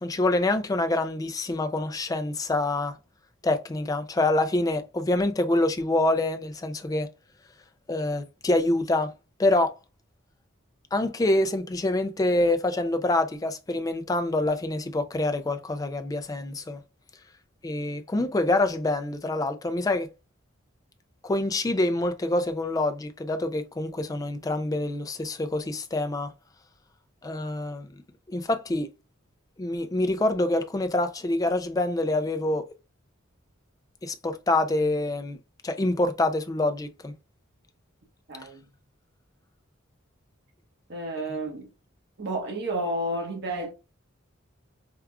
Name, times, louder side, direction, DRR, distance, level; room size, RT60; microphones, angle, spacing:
voice 1, 0.0-3.0 3.4-7.1 7.9-9.1 9.4-9.7 10.9-16.8 17.6-20.1 21.2-26.3 27.2-27.9 28.3-28.9 29.6-32.7 34.0-35.4 35.6-37.1, left 2 dB, 15° left, 0.3 m, -26 dB
voice 2, 38.3-38.6 40.9-41.7 42.2-43.7, right 1 dB, 55° right, 1.0 m, -31 dB
4.6 x 2.3 x 2.3 m
head